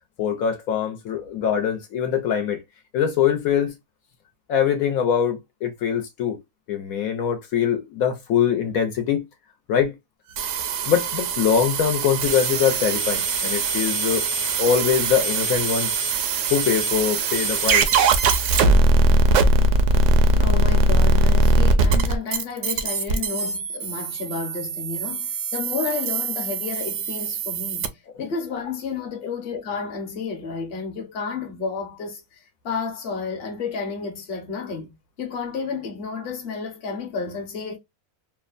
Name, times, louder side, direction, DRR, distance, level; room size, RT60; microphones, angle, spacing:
voice 1, 0.2-2.6 2.9-3.7 4.5-6.4 6.7-9.2 9.7-9.9 10.9-14.2 14.6-15.9 16.5-17.9, left 8 dB, 75° left, 1.1 m, -23 dB
sound 1, 10.4-27.9, right 2 dB, 70° right, 0.8 m, -21 dB
voice 2, 20.4-34.9 35.2-37.8, left 4 dB, 45° left, 1.0 m, -31 dB
3.1 x 2.1 x 2.3 m
omnidirectional pair, 1.5 m